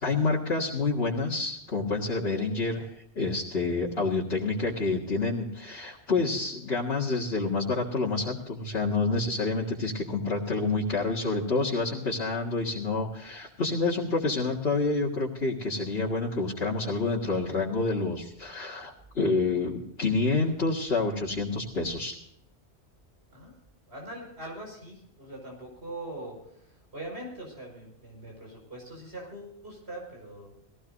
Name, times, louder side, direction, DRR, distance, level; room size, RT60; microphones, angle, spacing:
voice 1, 0.0-22.2, left 3 dB, 55° left, -4 dB, 2.1 m, -28 dB
voice 2, 23.9-30.5, right 1 dB, 60° right, -1 dB, 5.5 m, -42 dB
20.5 x 16.5 x 2.6 m, 0.77 s
omnidirectional pair, 1.2 m